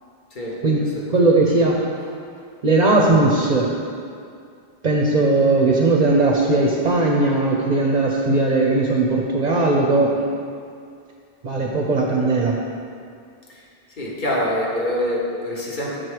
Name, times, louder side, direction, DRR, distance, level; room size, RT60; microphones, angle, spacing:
voice 1, 0.6-1.8 2.6-3.7 4.8-10.2 11.4-12.6, right 2 dB, 50° right, -1 dB, 0.6 m, -18 dB
voice 2, 14.0-16.0, left 1 dB, 50° left, -4 dB, 1.2 m, -25 dB
6.2 x 4.5 x 4.8 m, 2.3 s
omnidirectional pair, 1.1 m